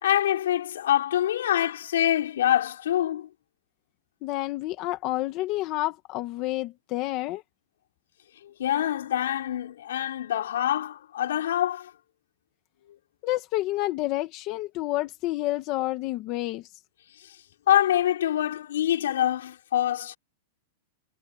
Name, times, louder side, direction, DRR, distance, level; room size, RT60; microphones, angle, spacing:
voice 1, 0.0-3.3 8.4-11.9 17.2-17.4 17.7-20.2, left 11 dB, 85° left, 4.4 m, -25 dB
voice 2, 4.2-7.4 13.2-16.7, left 17 dB, 30° left, 1.5 m, -29 dB
supercardioid pair, 175°, 0 cm